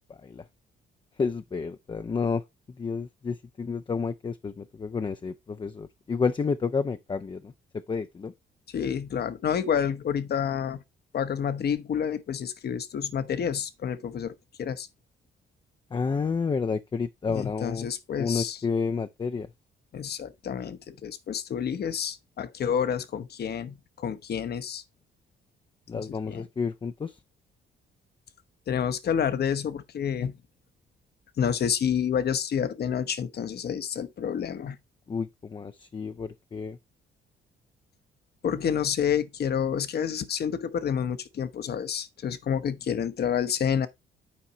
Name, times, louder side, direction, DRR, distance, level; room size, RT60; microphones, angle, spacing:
voice 1, 0.1-0.4 1.2-2.4 2.8-8.3 15.9-17.9 18.2-19.5 25.9-27.2 35.1-36.8, left 5 dB, 25° left, 0.5 m, -30 dB
voice 2, 8.7-10.8 11.1-14.9 17.3-18.6 19.9-24.8 25.9-26.5 28.7-30.3 31.4-34.8 38.4-43.9, left 8 dB, 55° left, 0.9 m, -29 dB
8.8 x 4.6 x 3.9 m
cardioid pair, 90°, 20 cm